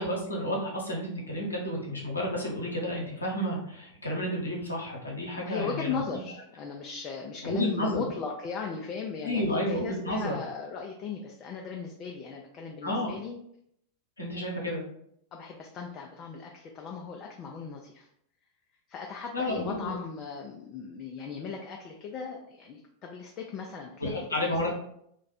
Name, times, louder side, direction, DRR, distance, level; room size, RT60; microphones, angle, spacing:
voice 1, 0.0-6.0 7.4-8.0 9.2-10.3 12.8-13.2 14.2-14.8 19.3-19.9 24.0-24.7, equal, 80° left, -3 dB, 0.8 m, -31 dB
voice 2, 5.5-13.4 15.3-18.1 18.9-24.6, left 5 dB, 35° left, 1 dB, 0.4 m, -37 dB
2.4 x 2.2 x 4.0 m, 0.71 s
figure-of-eight pair, 90°, 0 cm